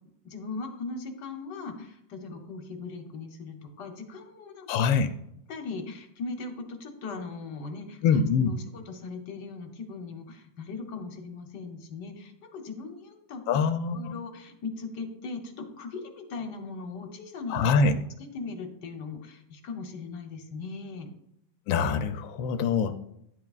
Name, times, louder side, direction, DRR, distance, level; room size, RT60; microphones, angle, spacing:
voice 1, 0.2-4.8 5.5-13.6 13.9-17.7 18.2-21.1, left 4 dB, 65° left, 5 dB, 1.5 m, -39 dB
voice 2, 4.7-5.1 8.0-8.5 13.5-14.0 17.5-17.9 21.7-23.0, left 5 dB, 85° left, 8 dB, 1.3 m, -24 dB
10.5 x 7.5 x 2.4 m, 0.75 s
omnidirectional pair, 2.1 m